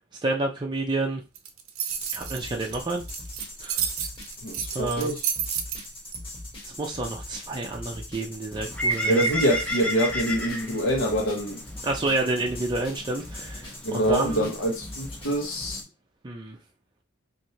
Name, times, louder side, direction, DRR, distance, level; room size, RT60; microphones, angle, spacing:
voice 1, 0.2-1.2 2.1-3.0 3.6-3.8 4.7-5.1 6.6-9.3 11.8-14.5 16.2-16.6, right 2 dB, 20° right, 0.4 m, -29 dB
sound 1, 1.4-6.2, right 9 dB, 90° right, 0.5 m, -31 dB
sound 2, 1.9-15.8, left 1 dB, 25° left, 1.2 m, -41 dB
voice 2, 4.4-5.2 9.1-11.6 13.8-15.8, right 1 dB, 70° left, 1.0 m, -25 dB
Bird, 8.5-15.8, equal, 5° left, 0.7 m, -33 dB
3.2 x 2.6 x 2.7 m
head